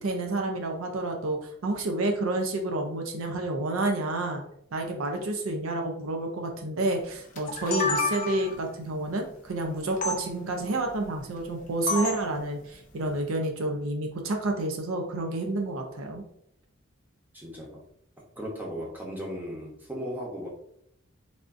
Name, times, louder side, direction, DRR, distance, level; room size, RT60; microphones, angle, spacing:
voice 1, 0.0-4.4 4.7-16.2, right 2 dB, 80° right, 3 dB, 0.5 m, -29 dB
sound 1, 7.4-8.6 10.0-10.2 11.9-12.3, left 2 dB, 40° left, 0.5 m, -28 dB
voice 2, 17.3-17.8 18.4-20.5, equal, 10° right, -3 dB, 0.7 m, -36 dB
3.4 x 2.5 x 2.5 m, 0.72 s
head